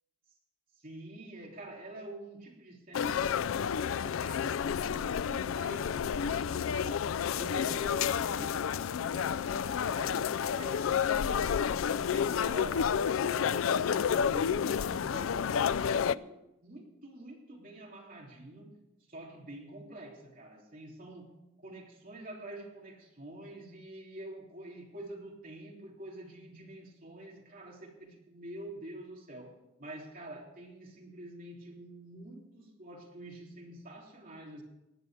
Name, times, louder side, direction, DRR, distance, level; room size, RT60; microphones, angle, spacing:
voice 1, 0.8-7.1 7.4-11.7 12.1-15.5 15.9-18.7 19.1-21.3 21.6-34.6, right 1 dB, 45° right, -1 dB, 3.3 m, -47 dB
sound 1, 2.9-16.1, left 7 dB, 80° left, 0.4 m, -30 dB
18.0 x 11.0 x 5.0 m, 0.93 s
head